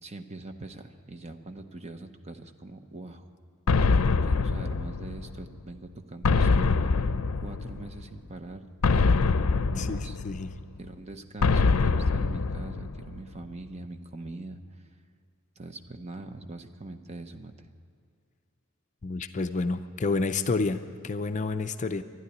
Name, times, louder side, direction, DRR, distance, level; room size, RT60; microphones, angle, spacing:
voice 1, 0.0-3.3 4.1-7.1 7.4-9.2 9.7-10.2 10.8-14.6 15.6-17.7, right 2 dB, 30° right, 7 dB, 0.8 m, -42 dB
sound 1, 3.7-5.4 6.2-8.0 8.8-10.6 11.4-13.2, left 4 dB, 90° left, 0.5 m, -24 dB
voice 2, 19.0-22.0, left 3 dB, 35° left, 9 dB, 0.5 m, -29 dB
12.5 x 11.0 x 10.0 m, 2.4 s
head